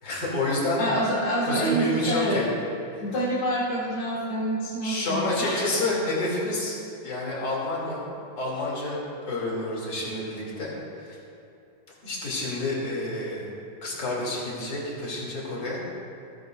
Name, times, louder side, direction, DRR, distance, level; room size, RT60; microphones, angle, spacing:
voice 1, 0.0-0.8 1.4-2.5 2.9-3.0 4.8-6.7 7.0-8.0 8.3-10.7 11.0-11.2 12.0-13.4 13.8-16.0, left 1 dB, 30° left, -5 dB, 3.3 m, -29 dB
voice 2, 0.8-2.4 3.0-5.8, right 1 dB, 65° left, -7 dB, 5.6 m, -27 dB
29.0 x 10.5 x 2.7 m, 2.7 s
omnidirectional pair, 4.5 m